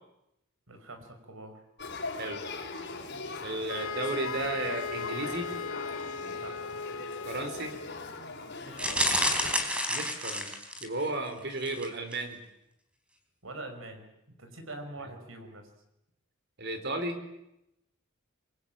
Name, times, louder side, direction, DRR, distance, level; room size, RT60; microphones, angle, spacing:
voice 1, 0.7-1.6 6.4-6.6 8.6-9.1 13.4-14.0 14.4-15.7, right 2 dB, 75° right, 6 dB, 5.7 m, -44 dB
Male speech man speaking / Child speech kid speaking / Conversation, 1.8-9.5, left 3 dB, 55° left, 5.6 m, -41 dB
voice 2, 2.1-2.5 3.4-5.5 7.2-7.8 9.9-12.4 16.6-17.2, right 2 dB, 55° right, 8 dB, 4.2 m, -34 dB
sound 1, 3.7-8.1, left 4 dB, 85° left, 2.1 m, -37 dB
sound 2, 8.8-11.1 11.6-11.9 12.1-12.2, equal, 5° right, 3.8 m, -29 dB
26.5 x 23.0 x 9.1 m, 0.85 s
head